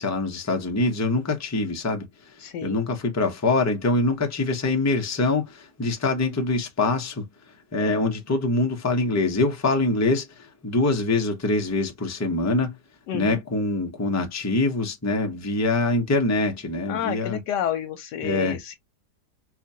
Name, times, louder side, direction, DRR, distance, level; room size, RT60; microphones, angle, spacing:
voice 1, 0.0-2.3 2.6-7.3 7.7-12.8 13.1-17.4 18.2-18.6, left 2 dB, 20° left, 0.5 m, -24 dB
voice 2, 2.4-2.8 13.1-13.4 16.9-18.8, left 10 dB, 80° left, 1.2 m, -30 dB
4.9 x 2.4 x 2.7 m
omnidirectional pair, 1.8 m